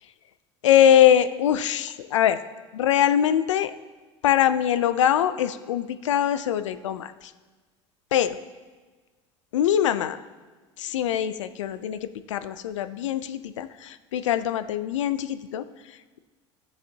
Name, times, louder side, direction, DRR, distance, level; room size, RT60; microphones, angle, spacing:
voice 1, 0.6-2.4 2.7-3.7 4.2-7.3 8.1-8.4 9.5-10.2 10.8-16.2, left 10 dB, 90° left, 13 dB, 0.4 m, -23 dB
13.0 x 7.3 x 2.8 m, 1.3 s
hypercardioid pair, 80°, 15 cm